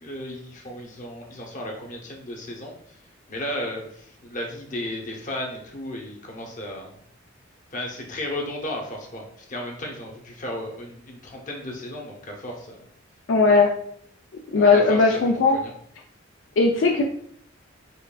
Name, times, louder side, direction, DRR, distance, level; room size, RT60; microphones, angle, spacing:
voice 1, 0.0-2.7 3.3-7.0 7.7-12.9 14.5-15.2 15.5-15.7, left 1 dB, 40° left, 1 dB, 0.8 m, -34 dB
voice 2, 13.3-13.7 14.5-15.6 16.6-17.0, left 4 dB, 70° left, 1 dB, 0.4 m, -17 dB
5.4 x 2.5 x 2.3 m, 0.65 s
head